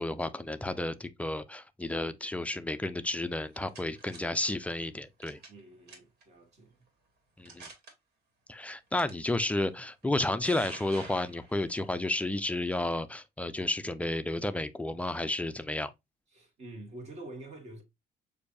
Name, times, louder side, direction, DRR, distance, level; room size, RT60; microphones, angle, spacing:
voice 1, 0.0-5.4 7.4-7.7 8.5-15.9, left 2 dB, 10° left, 0.4 m, -32 dB
sound 1, 3.3-4.2 5.2-5.6 5.9-6.2 6.9-7.0 7.4-7.9 9.0-9.1 10.0-11.8, right 3 dB, 70° right, 1.7 m, -48 dB
voice 2, 5.5-6.8 16.3-17.8, right 2 dB, 40° right, 1.8 m, -47 dB
6.5 x 2.7 x 2.6 m
cardioid pair, 110°, 17 cm